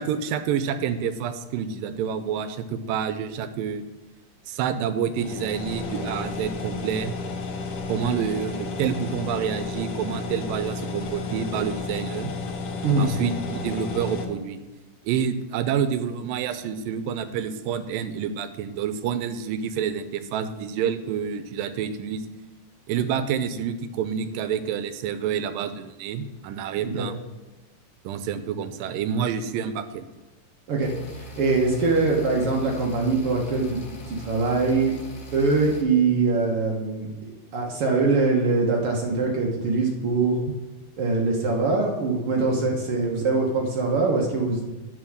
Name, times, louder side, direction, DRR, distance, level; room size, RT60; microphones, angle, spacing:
voice 1, 0.0-3.8 4.5-7.2 7.9-12.3 13.0-14.6 15.0-22.2 22.9-27.2 28.0-30.1, right 8 dB, 85° right, 11 dB, 2.3 m, -28 dB
sound 1, 5.1-14.3, left 3 dB, 90° left, 1.2 m, -32 dB
sound 2, 30.8-35.8, right 1 dB, 60° left, 0.8 m, -41 dB
voice 2, 31.4-33.8 34.0-34.9 35.3-40.4 41.0-44.6, right 3 dB, 60° right, 0 dB, 1.5 m, -23 dB
9.4 x 4.6 x 6.4 m, 1.1 s
omnidirectional pair, 3.9 m